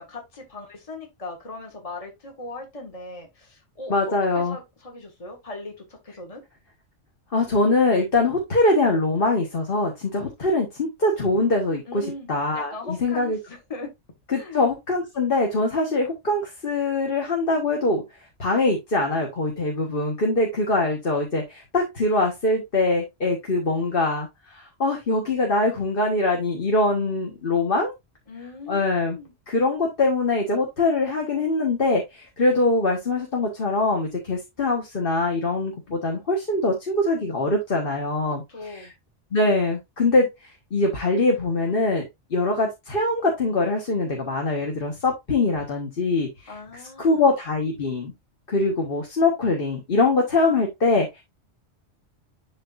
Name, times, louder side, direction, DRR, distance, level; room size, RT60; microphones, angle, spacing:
voice 1, 0.0-3.9 4.3-6.4 11.9-13.9 14.3-14.6 28.3-29.3 38.3-38.9 46.5-47.2, left 3 dB, 30° left, 1.7 m, -39 dB
voice 2, 3.9-4.6 7.3-13.4 14.3-18.0 18.4-27.9 28.7-29.2 29.5-38.9 39.3-40.3 40.7-46.5 47.0-48.1 48.5-51.2, left 2 dB, 50° left, 1.6 m, -23 dB
11.5 x 3.8 x 2.6 m
omnidirectional pair, 1.2 m